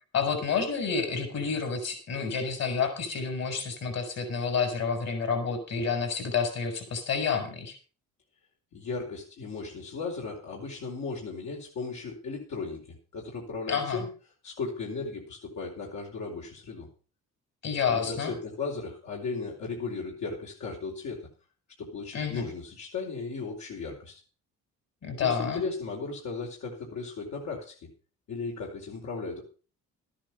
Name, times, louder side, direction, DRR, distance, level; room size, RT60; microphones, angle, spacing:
voice 1, 0.1-7.8 13.7-14.0 17.6-18.3 22.1-22.5 25.0-25.6, left 5 dB, 60° left, 6 dB, 5.6 m, -29 dB
voice 2, 8.7-14.1 14.4-16.9 17.9-21.3 21.8-24.2 25.2-27.8 28.3-29.4, left 4 dB, 75° left, -2 dB, 4.5 m, -36 dB
13.5 x 10.5 x 5.5 m, 0.36 s
cardioid pair, 90°, 30 cm